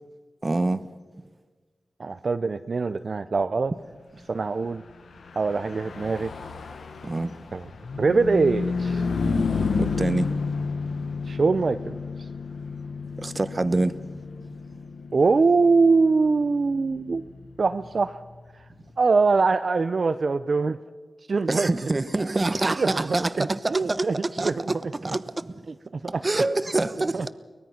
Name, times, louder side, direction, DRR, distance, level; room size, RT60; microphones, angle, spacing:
voice 1, 0.4-0.8 7.0-7.3 9.8-10.3 13.2-13.9 21.5-24.1 24.4-25.5 26.2-27.3, right 2 dB, 35° right, 1.0 m, -26 dB
voice 2, 2.0-3.7 4.3-4.8 5.4-6.3 7.5-7.7 8.0-9.0 11.3-12.3 15.1-17.3 17.6-18.2 18.5-18.7 19.0-20.8 21.3-21.7 22.7-24.7 25.7-25.8 26.0-26.2 27.1-27.3, right 4 dB, 60° right, 0.6 m, -23 dB
Car passing by / Truck, 5.1-18.8, left 4 dB, 80° left, 1.3 m, -31 dB
23.5 x 19.5 x 5.9 m
cardioid pair, 60°, 0 cm